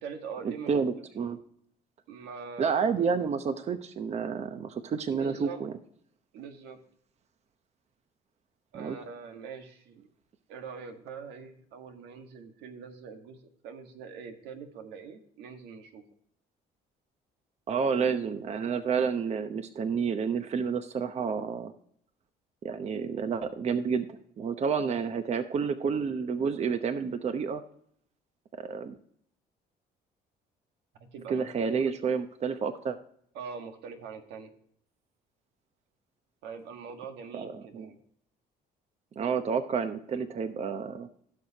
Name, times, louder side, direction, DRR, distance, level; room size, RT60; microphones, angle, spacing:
voice 1, 0.0-1.1 2.1-2.9 5.1-5.7 6.3-6.8 8.7-10.1 10.5-13.4 13.6-16.0 31.1-31.9 33.3-34.5 36.4-38.0, right 6 dB, 90° right, 5 dB, 1.6 m, -43 dB
voice 2, 0.7-1.4 2.6-5.7 8.7-9.0 17.7-21.7 22.6-27.6 28.5-29.0 31.3-33.0 37.3-37.9 39.2-41.1, right 6 dB, 40° right, 9 dB, 0.8 m, -30 dB
16.0 x 6.5 x 2.8 m, 0.65 s
cardioid pair, 110°, 17 cm